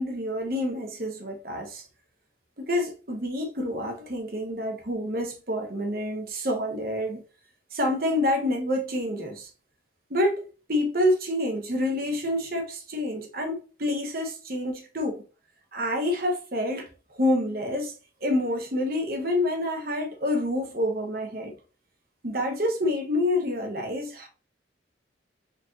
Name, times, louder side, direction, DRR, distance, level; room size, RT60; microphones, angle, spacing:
voice 1, 0.0-1.9 2.6-7.2 7.7-9.5 10.1-15.2 15.7-17.9 18.2-21.5 22.2-24.3, left 1 dB, 50° right, 1.0 m, -28 dB
4.0 x 3.3 x 2.6 m
head